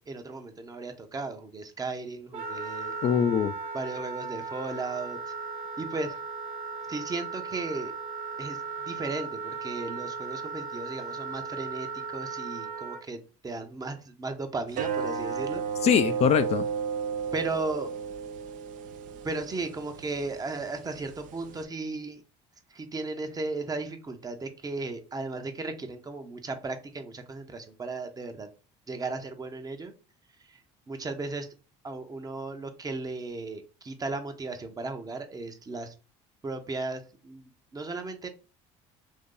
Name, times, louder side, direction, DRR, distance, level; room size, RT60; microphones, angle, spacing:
voice 1, 0.0-2.9 3.7-5.3 5.8-6.2 6.9-7.9 8.4-8.6 8.9-15.6 17.3-17.9 19.2-22.2 22.7-28.5 28.9-29.9 30.4-30.6 30.9-31.5 31.8-35.9 36.4-38.3, right 3 dB, 25° right, 0.7 m, -35 dB
Wind instrument woodwind instrument, 2.3-13.0, right 4 dB, 80° right, 0.8 m, -37 dB
voice 2, 3.0-3.5 15.8-16.7, left 8 dB, 45° left, 0.4 m, -22 dB
sound 1, 14.7-21.6, right 6 dB, 60° right, 0.5 m, -33 dB
2.8 x 2.6 x 3.7 m
supercardioid pair, 80°, 15 cm